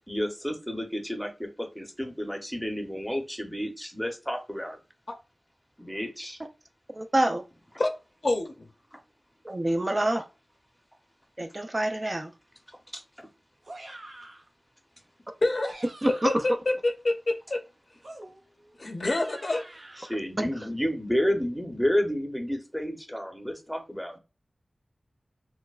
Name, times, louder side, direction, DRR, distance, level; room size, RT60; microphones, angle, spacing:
voice 1, 0.1-1.3 1.8-4.8 5.8-6.4 20.1-24.1, equal, 5° left, 0.7 m, -30 dB
voice 2, 6.9-7.4 9.4-10.2 11.4-12.3 16.0-16.3 20.4-20.5, right 1 dB, 35° right, 0.4 m, -26 dB
voice 3, 8.2-8.7 15.4-15.7 16.2-17.6 18.8-19.6, left 2 dB, 55° left, 0.6 m, -27 dB
sound 1, 13.6-14.5 15.4-16.6 18.0-20.2, right 1 dB, 60° right, 0.8 m, -46 dB
4.3 x 2.1 x 2.4 m
wide cardioid pair, 65°, 0 cm